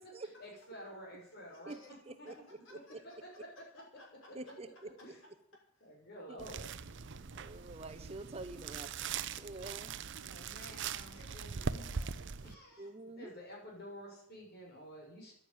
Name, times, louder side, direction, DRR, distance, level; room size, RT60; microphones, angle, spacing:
voice 1, 0.2-1.7 2.2-2.3 2.7-2.8 5.0-5.2 5.8-6.7 10.2-11.5 12.4-12.9 13.2-15.3, equal, 50° left, -2 dB, 6.8 m, -50 dB
voice 2, 1.3-1.9 2.3-2.4 2.6-3.4 3.7-4.8 5.7-5.9 6.9-7.3 10.3-10.8 11.1-12.9, left 2 dB, 65° left, -1 dB, 6.0 m, -60 dB
voice 3, 2.1-2.4 2.9-3.0 4.3-4.9 6.3-6.4 7.4-9.0 9.4-9.9 12.8-13.3, right 2 dB, 30° right, 9 dB, 0.9 m, -46 dB
sound 1, 6.4-12.5, right 6 dB, 60° right, 0.7 m, -41 dB
11.5 x 9.6 x 9.5 m, 0.68 s
head